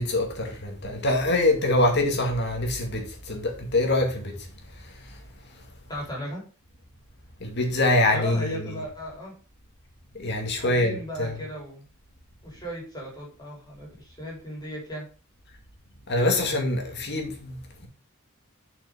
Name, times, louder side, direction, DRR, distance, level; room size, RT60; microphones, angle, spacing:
voice 1, 0.0-4.5 4.8-5.2 7.4-8.8 10.1-11.3 16.1-17.9, left 2 dB, 50° left, 2.2 m, -25 dB
voice 2, 5.9-6.4 8.1-9.3 10.6-11.9 12.4-15.1, equal, 20° left, 3.8 m, -36 dB
7.0 x 5.8 x 5.1 m
head